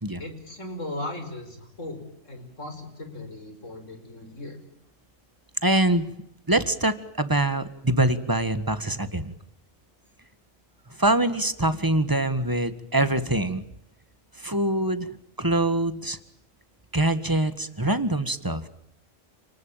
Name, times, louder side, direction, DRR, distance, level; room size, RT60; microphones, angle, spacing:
voice 1, 0.2-4.6, left 1 dB, 70° left, 7 dB, 5.8 m, -37 dB
voice 2, 5.6-6.0 6.5-9.3 11.0-13.6 14.4-16.2 16.9-18.7, right 1 dB, 15° right, 12 dB, 1.6 m, -24 dB
29.5 x 19.0 x 9.1 m, 0.81 s
omnidirectional pair, 1.4 m